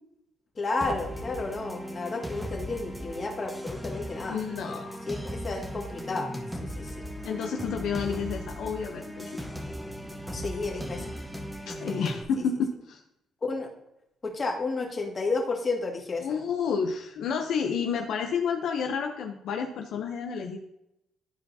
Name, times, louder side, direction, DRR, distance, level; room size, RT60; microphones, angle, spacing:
voice 1, 0.6-4.4 4.6-6.3 6.6-7.1 10.3-11.2 11.9-12.4 13.4-13.7 14.2-16.3, left 3 dB, 35° left, 0 dB, 1.9 m, -32 dB
sound 1, 0.8-12.2, equal, 5° right, 1.0 m, -37 dB
voice 2, 4.3-5.0 7.2-9.5 11.7-13.0 16.2-20.6, left 6 dB, 75° left, 3 dB, 0.6 m, -30 dB
12.0 x 4.6 x 2.7 m, 0.84 s
cardioid pair, 90°, 0 cm